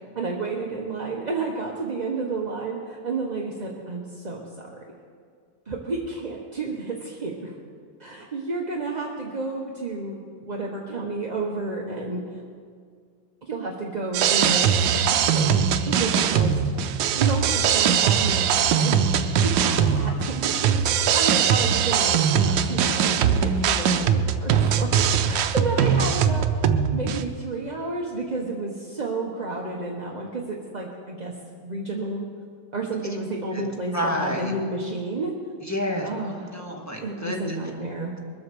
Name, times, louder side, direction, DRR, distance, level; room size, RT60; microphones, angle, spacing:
voice 1, 0.1-4.7 5.7-7.5 8.0-12.4 13.4-15.5 15.8-16.8 17.1-19.0 19.4-24.9 25.3-26.5 26.9-31.3 31.6-32.3 32.7-35.3 36.0-36.6 37.0-38.1, right 3 dB, 30° right, -1 dB, 0.9 m, -31 dB
sound 1, 14.1-27.2, right 7 dB, 75° right, 1.3 m, -21 dB
voice 2, 19.6-20.3 33.5-33.6 33.9-34.5 35.6-37.6, equal, 10° left, 0 dB, 1.5 m, -30 dB
22.0 x 7.7 x 6.9 m, 2.1 s
omnidirectional pair, 2.2 m